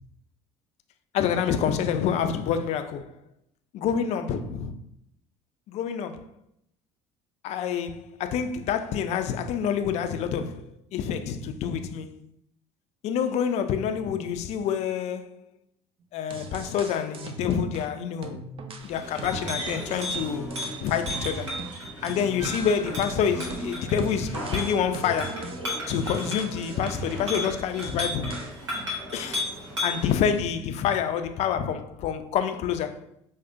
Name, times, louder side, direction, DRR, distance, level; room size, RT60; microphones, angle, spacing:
voice 1, 1.1-3.2 3.7-4.7 5.7-6.3 7.4-12.2 13.0-15.3 16.1-18.4 18.8-21.6 22.0-25.5 25.9-28.4 29.1-29.5 29.8-33.0, left 7 dB, 50° left, 0.4 m, -27 dB
sound 1, 16.0-16.1 16.3-17.9 18.2-21.8 22.1-27.6 27.8-28.6, right 3 dB, 40° right, 0.5 m, -40 dB
Chink clink, 18.8-30.1, left 1 dB, 85° right, 0.9 m, -34 dB
4.8 x 2.1 x 2.5 m
hypercardioid pair, 65°, 15 cm